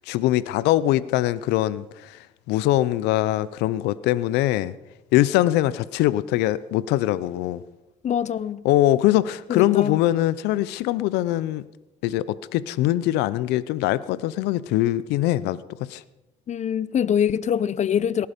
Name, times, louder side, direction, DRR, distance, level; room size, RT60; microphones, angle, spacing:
voice 1, 0.0-4.7 5.1-7.6 8.6-11.6 12.0-16.0, left 15 dB, 80° left, 0.6 m, -22 dB
voice 2, 8.0-8.6 9.5-10.0 16.5-18.3, left 8 dB, 45° left, 0.6 m, -24 dB
18.0 x 11.5 x 5.1 m
supercardioid pair, 70°, 17 cm